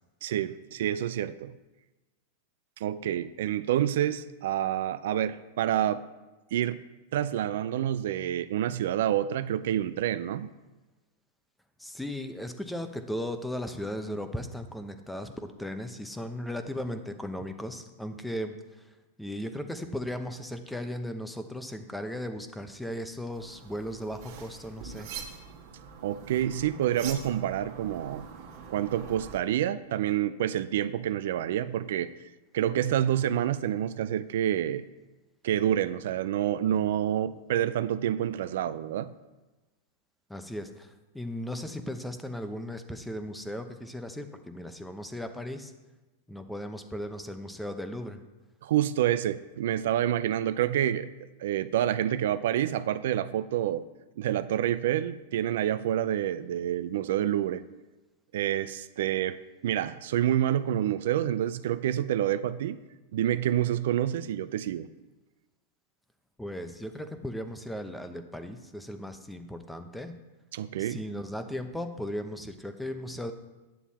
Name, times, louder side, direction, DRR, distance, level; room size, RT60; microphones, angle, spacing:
voice 1, 0.2-1.5 2.8-6.0 6.5-6.8 7.1-10.5 26.0-28.3 28.7-32.1 32.5-34.9 35.4-39.1 48.6-51.1 51.4-53.8 54.2-57.6 58.3-62.8 63.1-64.9 70.5-71.0, right 11 dB, 70° right, 14 dB, 0.4 m, -28 dB
voice 2, 11.8-18.9 19.2-25.1 40.3-45.7 46.3-48.2 66.4-70.2 70.8-73.3, left 1 dB, 5° left, 8 dB, 0.8 m, -37 dB
sound 1, 23.3-29.4, right 6 dB, 55° right, 1.5 m, -44 dB
9.3 x 7.1 x 4.2 m, 1.1 s
hypercardioid pair, 120°, 0 cm